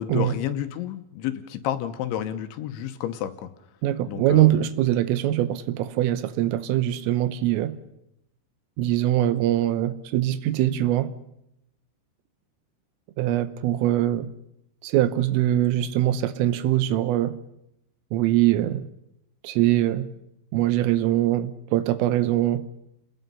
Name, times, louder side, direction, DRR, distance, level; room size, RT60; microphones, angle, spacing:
voice 1, 0.0-3.5 4.1-4.5, left 11 dB, 75° left, 9 dB, 3.2 m, -30 dB
voice 2, 3.8-7.8 8.8-11.1 13.2-14.3 14.8-17.3 18.1-18.9 19.4-20.1 20.5-22.6, right 13 dB, 85° right, 12 dB, 3.6 m, -22 dB
30.0 x 20.5 x 5.5 m, 0.83 s
omnidirectional pair, 5.8 m